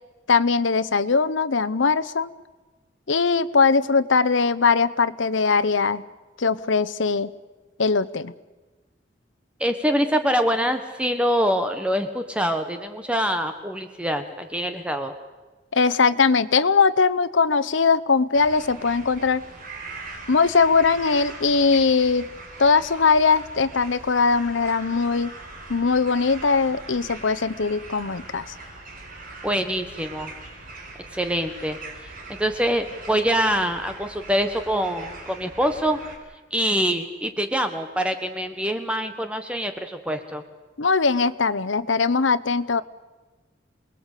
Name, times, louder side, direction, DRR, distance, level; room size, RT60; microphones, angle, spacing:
voice 1, 0.3-2.3 3.1-6.0 6.4-7.3 7.8-8.3 15.7-19.4 20.3-22.3 22.6-25.3 25.7-28.5 40.8-42.8, left 4 dB, 90° left, 13 dB, 0.9 m, -20 dB
voice 2, 9.6-15.1 29.4-30.3 31.1-31.8 32.0-36.0 36.5-40.4, equal, 5° right, 7 dB, 1.2 m, -25 dB
sound 1, 18.3-36.1, right 3 dB, 50° right, 4.7 m, -41 dB
28.0 x 20.0 x 8.3 m, 1.2 s
head